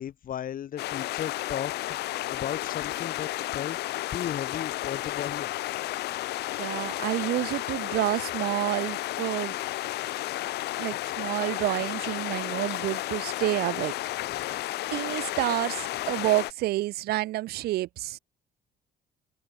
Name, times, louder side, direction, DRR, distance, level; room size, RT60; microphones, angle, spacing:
voice 1, 0.0-1.7 2.0-3.8 4.1-5.5 14.2-14.4, left 10 dB, 55° left, 5.8 m, -35 dB
sound 1, 0.8-16.5, left 16 dB, 75° left, 1.9 m, -32 dB
voice 2, 6.6-9.6 10.8-13.9 14.9-18.2, right 16 dB, 70° right, 0.5 m, -29 dB
cardioid pair, 110°, 17 cm